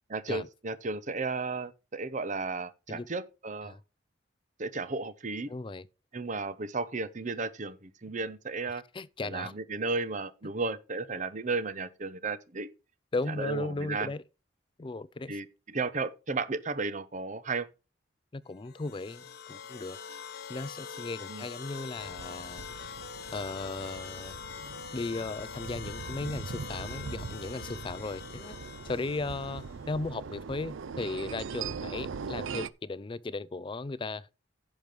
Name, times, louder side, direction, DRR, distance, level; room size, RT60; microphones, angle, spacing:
voice 1, 0.1-3.7 4.6-5.5 6.1-8.8 9.3-12.7 13.4-14.1 15.3-15.5 15.7-17.7 21.3-21.4, right 3 dB, 40° right, 0.8 m, -34 dB
voice 2, 5.5-5.9 8.7-9.5 10.4-10.5 13.1-14.2 14.8-15.4 18.3-20.0 20.5-24.4 24.9-28.6 28.8-34.3, left 3 dB, 25° left, 0.4 m, -36 dB
sound 1, 18.6-29.9, left 6 dB, 55° left, 1.0 m, -44 dB
sound 2, 21.9-32.7, right 5 dB, 85° right, 0.5 m, -41 dB
10.5 x 6.1 x 5.0 m
head